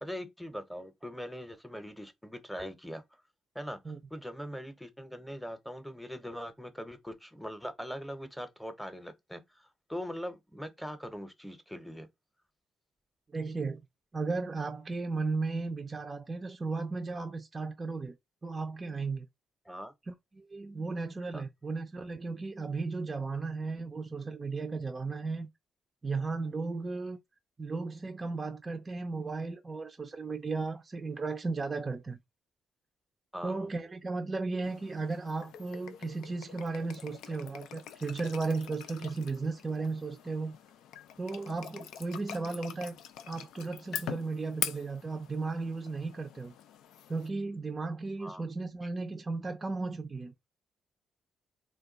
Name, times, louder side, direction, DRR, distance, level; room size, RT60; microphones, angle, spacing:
voice 1, 0.0-3.0 3.5-3.8 4.1-12.1 19.7-19.9 21.3-21.4 33.3-33.7 48.2-48.4, equal, ahead, 0.7 m, -41 dB
voice 2, 13.3-13.8 14.1-18.2 18.4-19.3 20.1-25.5 26.0-27.2 27.6-32.2 33.4-40.5 41.2-43.0 43.2-46.5 47.1-50.3, right 3 dB, 30° right, 0.4 m, -35 dB
sound 1, 34.6-47.3, left 9 dB, 90° left, 0.3 m, -44 dB
2.3 x 2.2 x 3.8 m
cardioid pair, 90°, 0 cm